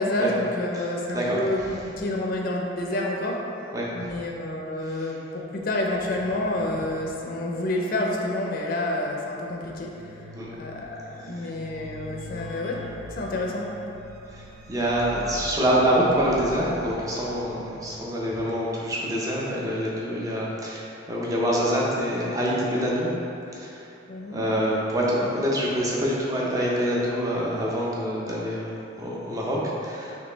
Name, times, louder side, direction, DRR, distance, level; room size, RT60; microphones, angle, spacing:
voice 1, 0.0-3.4 3.9-9.9 10.6-12.8 13.1-13.7 24.1-24.4, left 1 dB, 45° left, -1 dB, 0.4 m, -28 dB
voice 2, 0.7-1.7 3.7-3.9 4.9-5.1 10.3-10.5 11.2-11.5 14.3-23.1 23.5-23.9 24.3-30.2, equal, 15° right, -5 dB, 0.5 m, -26 dB
sound 1, 9.8-18.1, equal, 80° right, 0.4 m, -43 dB
4.0 x 3.2 x 3.8 m, 2.8 s
head